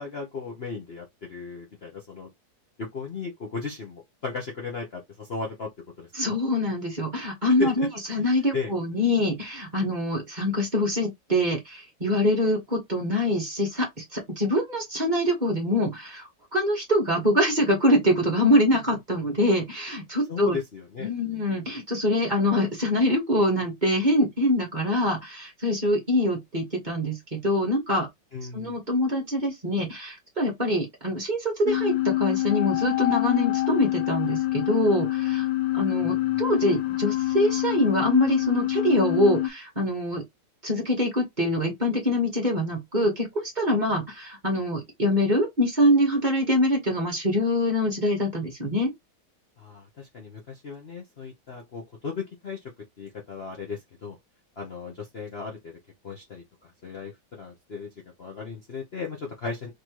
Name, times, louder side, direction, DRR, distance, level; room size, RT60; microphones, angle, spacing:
voice 1, 0.0-2.3 2.8-5.7 6.0-6.4 7.6-8.2 8.5-8.7 18.7-19.0 20.3-21.1 28.3-28.8 36.0-36.4 49.6-52.6 53.0-54.2 54.6-55.8 56.0-57.9 58.2-59.7, left 5 dB, 40° left, 1.0 m, -35 dB
voice 2, 6.1-20.6 21.0-28.1 28.5-35.5 35.7-40.2 40.6-48.9, left 1 dB, 25° right, 1.6 m, -24 dB
sound 1, 31.7-39.5, left 17 dB, 85° left, 1.4 m, -26 dB
3.9 x 3.3 x 3.0 m
omnidirectional pair, 2.0 m